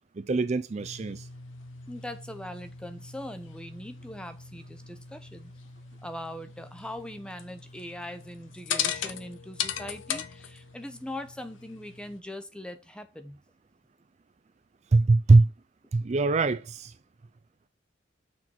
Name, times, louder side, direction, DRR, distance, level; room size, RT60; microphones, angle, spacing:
voice 1, 0.2-1.2 14.9-15.5 15.9-16.9, right 3 dB, 35° right, 0.4 m, -22 dB
sound 1, 0.8-12.2, left 8 dB, 85° left, 0.8 m, -39 dB
voice 2, 1.9-5.5 6.0-13.4, left 1 dB, 5° left, 0.7 m, -41 dB
6.2 x 4.5 x 4.2 m
head